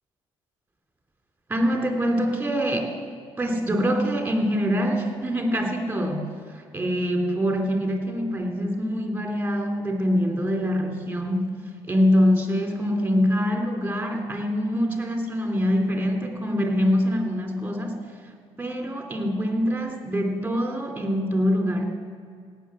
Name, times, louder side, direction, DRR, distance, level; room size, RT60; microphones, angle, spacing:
voice 1, 1.5-2.9 3.4-6.2 6.5-11.5 11.9-18.0 18.6-21.8, equal, 15° right, 2 dB, 3.1 m, -24 dB
17.5 x 6.8 x 8.7 m, 2.1 s
cardioid pair, 95°, 11 cm